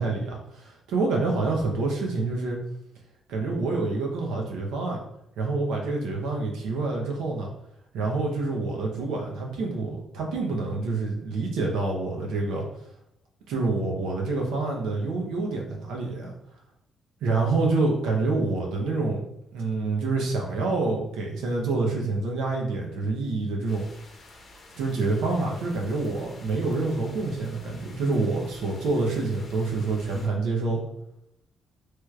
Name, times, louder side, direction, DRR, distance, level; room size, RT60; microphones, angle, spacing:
voice 1, 0.0-2.6 3.3-5.0 5.4-7.5 7.9-12.6 13.5-16.3 17.2-19.2 19.5-23.8 24.8-30.8, right 3 dB, 85° right, 0 dB, 0.7 m, -27 dB
sound 1, 23.7-30.3, left 2 dB, 50° left, 0.8 m, -50 dB
3.1 x 2.4 x 3.1 m, 0.80 s
cardioid pair, 90°, 0 cm